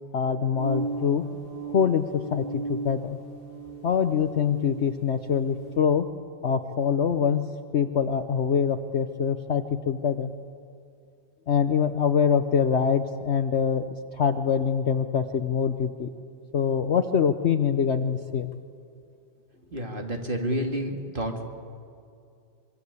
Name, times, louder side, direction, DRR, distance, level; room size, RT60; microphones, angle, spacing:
voice 1, 0.1-1.2 1.7-3.2 3.8-6.1 6.4-10.3 11.5-13.8 14.1-16.1 16.5-18.5, left 7 dB, 90° left, 9 dB, 0.5 m, -24 dB
sound 1, 0.6-5.8, right 3 dB, 55° right, 6.2 m, -36 dB
voice 2, 19.7-21.4, equal, 25° right, 3 dB, 2.3 m, -29 dB
25.0 x 23.5 x 8.2 m, 2.4 s
omnidirectional pair, 2.2 m